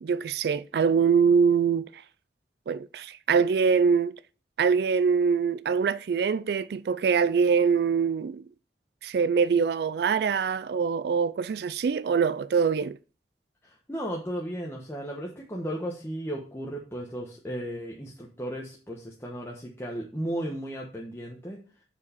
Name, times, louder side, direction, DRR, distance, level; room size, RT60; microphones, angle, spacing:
voice 1, 0.0-2.0 2.7-4.2 4.6-8.4 9.0-13.0, right 6 dB, 65° right, 0.3 m, -24 dB
voice 2, 13.6-21.6, equal, 15° left, 1.1 m, -35 dB
6.8 x 4.8 x 5.5 m
head